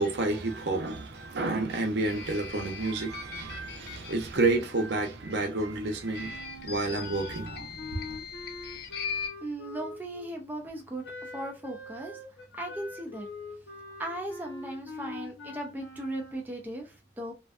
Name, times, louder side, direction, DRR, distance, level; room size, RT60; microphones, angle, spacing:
voice 1, 0.0-8.2, right 2 dB, 75° right, 0.7 m, -30 dB
sound 1, 2.0-4.5 6.1-9.3, left 6 dB, 65° left, 0.5 m, -40 dB
Wind instrument woodwind instrument, 6.1-10.3 11.0-16.4, left 2 dB, 85° left, 0.9 m, -43 dB
voice 2, 9.4-12.2 12.5-13.3 14.0-17.3, right 1 dB, 10° right, 0.4 m, -37 dB
2.5 x 2.2 x 2.4 m
head